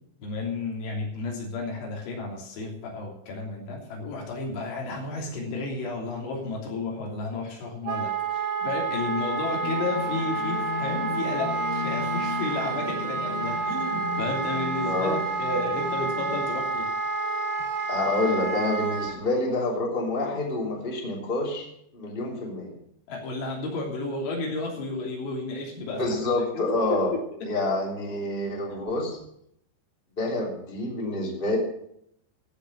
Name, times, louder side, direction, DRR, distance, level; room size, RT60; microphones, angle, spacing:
voice 1, 0.2-16.9 23.1-26.1 26.5-27.0 27.4-27.5 28.7-28.9, left 3 dB, 90° left, -1 dB, 5.5 m, -32 dB
Wind instrument woodwind instrument, 7.8-19.2, right 4 dB, 90° right, 1.0 m, -29 dB
sound 1, 9.6-16.4, left 9 dB, 70° left, 2.4 m, -36 dB
voice 2, 14.8-15.2 17.9-21.7 21.9-22.8 26.0-27.1 27.4-29.2 30.2-31.6, left 2 dB, 15° left, -1 dB, 2.4 m, -27 dB
14.5 x 6.7 x 7.9 m, 0.72 s
omnidirectional pair, 5.2 m